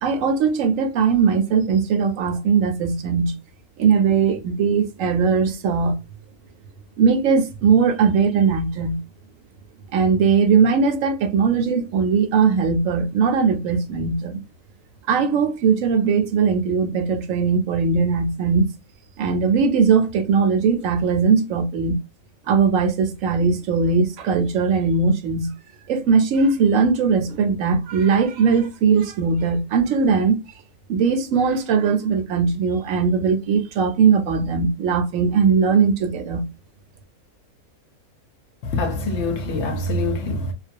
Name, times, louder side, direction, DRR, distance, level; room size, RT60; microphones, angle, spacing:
voice 1, 0.0-3.3 3.8-5.9 7.0-9.0 9.9-14.4 15.1-18.7 19.2-22.0 22.5-25.5 25.9-30.4 30.9-36.4, right 5 dB, 70° right, 0.9 m, -19 dB
voice 2, 38.6-40.5, left 2 dB, 65° left, 0.8 m, -24 dB
2.3 x 2.3 x 2.5 m
omnidirectional pair, 1.5 m